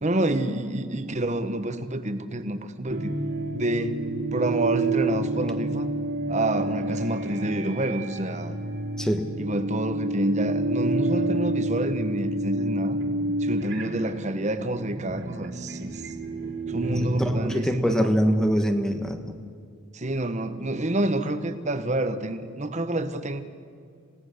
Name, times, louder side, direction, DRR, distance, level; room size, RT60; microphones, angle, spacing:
voice 1, 0.0-3.1 3.5-4.0 4.3-5.9 6.3-8.5 9.4-13.0 13.4-16.0 16.7-18.1 19.9-23.4, right 1 dB, 35° right, 10 dB, 1.2 m, -28 dB
sound 1, 2.9-18.0, right 2 dB, 70° right, 3.3 m, -29 dB
voice 2, 17.0-19.2, equal, 5° left, 6 dB, 1.2 m, -24 dB
28.5 x 17.5 x 6.6 m, 2.2 s
head